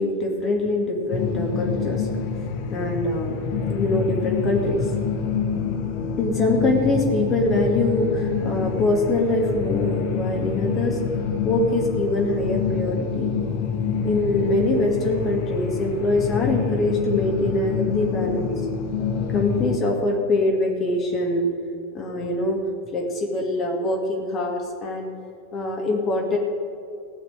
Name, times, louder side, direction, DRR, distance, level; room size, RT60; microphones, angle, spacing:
voice 1, 0.0-2.1 2.7-3.4 3.7-4.8 6.2-11.0 11.4-13.3 14.0-18.5 19.3-21.5 21.9-22.6 22.9-25.1 25.5-26.4, left 2 dB, 30° left, 0 dB, 2.4 m, -23 dB
sound 1, 1.1-19.8, left 6 dB, 45° left, 1.2 m, -26 dB
16.5 x 5.9 x 9.1 m, 2.4 s
figure-of-eight pair, 90°, 0 cm